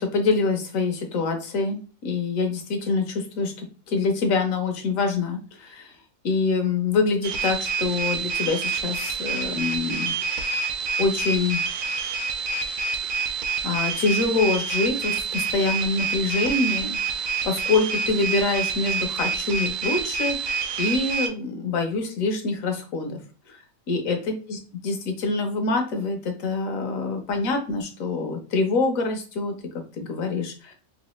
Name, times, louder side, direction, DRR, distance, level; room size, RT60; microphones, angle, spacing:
voice 1, 0.0-5.9 6.2-10.1 11.0-11.6 13.6-23.2 23.5-29.6 30.0-30.7, left 3 dB, 75° left, 4 dB, 1.2 m, -25 dB
sound 1, 7.2-21.3, right 5 dB, 75° right, 1.0 m, -27 dB
3.2 x 2.6 x 3.0 m, 0.37 s
omnidirectional pair, 1.5 m